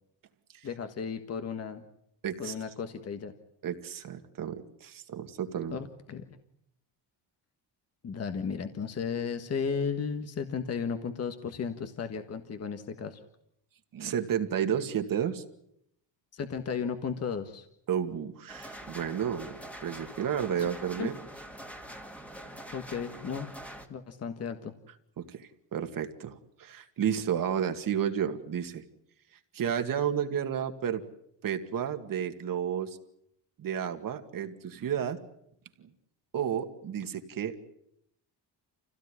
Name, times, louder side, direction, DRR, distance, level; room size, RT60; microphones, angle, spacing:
voice 1, 0.6-1.8 2.4-3.3 5.7-6.4 8.0-13.2 16.3-17.7 21.0-21.1 22.7-23.5 23.9-24.7, left 6 dB, 35° left, 7 dB, 1.5 m, -34 dB
voice 2, 2.2-2.5 3.6-5.8 13.9-15.4 17.9-21.1 25.2-28.8 29.5-31.0 31.4-33.0 33.6-35.2 35.8-35.9 36.3-37.6, right 8 dB, 50° right, 6 dB, 2.2 m, -32 dB
sound 1, 18.5-23.9, right 1 dB, 5° left, 2.2 m, -45 dB
28.5 x 17.0 x 9.8 m, 0.76 s
cardioid pair, 165°, 43 cm